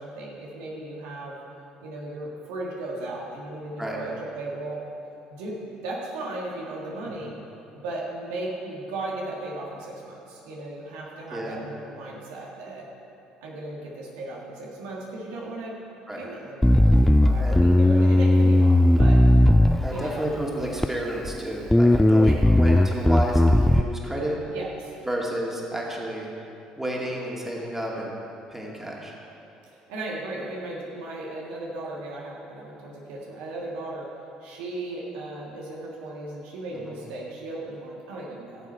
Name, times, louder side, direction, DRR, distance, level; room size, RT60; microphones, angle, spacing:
voice 1, 0.0-1.4 1.8-4.8 5.3-7.3 7.7-12.8 13.4-15.8 16.1-19.2 19.9-20.3 22.3-22.4 24.5-24.9 29.6-34.1 34.4-38.7, right 2 dB, 70° right, -3 dB, 1.6 m, -36 dB
Bass guitar, 16.6-20.2 20.8-21.4 21.7-23.8, left 1 dB, 5° left, 0.4 m, -17 dB
voice 2, 19.8-24.4 25.0-26.3 26.8-28.1 28.5-29.1 36.7-37.0, right 1 dB, 10° right, -3 dB, 2.3 m, -31 dB
14.0 x 7.3 x 4.4 m, 2.8 s
hypercardioid pair, 55°, 3 cm